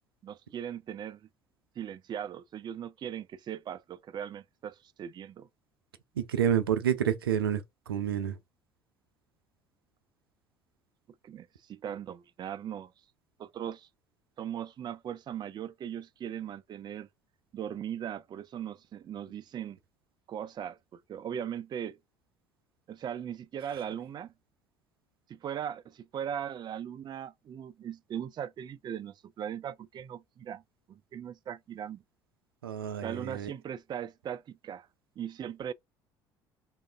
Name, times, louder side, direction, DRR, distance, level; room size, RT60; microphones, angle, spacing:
voice 1, 0.2-1.3 1.8-5.5 11.2-12.9 13.4-13.9 14.4-17.1 17.5-19.8 20.3-22.0 22.9-24.3 25.3-30.6 30.9-32.0 33.0-34.9 35.2-35.7, right 9 dB, 40° right, 0.4 m, -39 dB
voice 2, 6.2-8.4 23.6-23.7 32.6-33.5, right 9 dB, 90° right, 0.5 m, -29 dB
3.5 x 2.5 x 3.4 m
hypercardioid pair, 60°, 12 cm